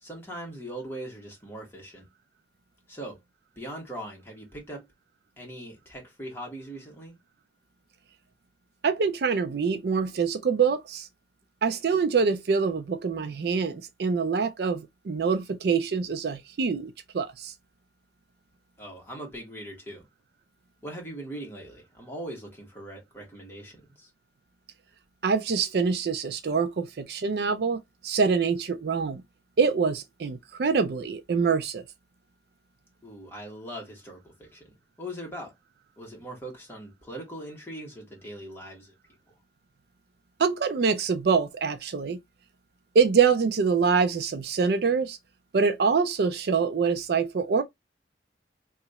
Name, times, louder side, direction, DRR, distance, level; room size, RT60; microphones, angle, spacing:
voice 1, 0.0-2.1 2.9-3.2 3.5-4.9 5.4-7.2 18.8-20.1 20.8-24.1 33.0-35.5 36.0-38.9 39.3-39.4, right 1 dB, 10° left, 1.5 m, -40 dB
voice 2, 8.8-11.1 11.6-17.5 25.2-29.2 29.6-31.8 40.4-42.2 42.9-45.2 45.5-47.6, right 5 dB, 55° right, 0.4 m, -25 dB
2.9 x 2.4 x 4.0 m
head